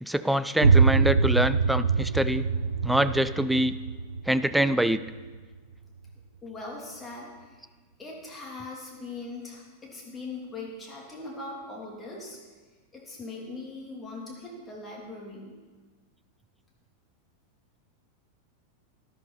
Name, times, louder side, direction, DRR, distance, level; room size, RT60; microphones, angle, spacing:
voice 1, 0.0-2.5 2.8-3.7 4.3-5.0, right 1 dB, 5° right, 14 dB, 0.4 m, -25 dB
sound 1, 0.6-6.2, right 5 dB, 75° right, 0.5 m, -25 dB
voice 2, 6.4-7.6 8.0-12.4 12.9-15.5, left 3 dB, 15° left, -3 dB, 3.1 m, -40 dB
13.0 x 11.0 x 4.2 m, 1.4 s
figure-of-eight pair, 90°, 0 cm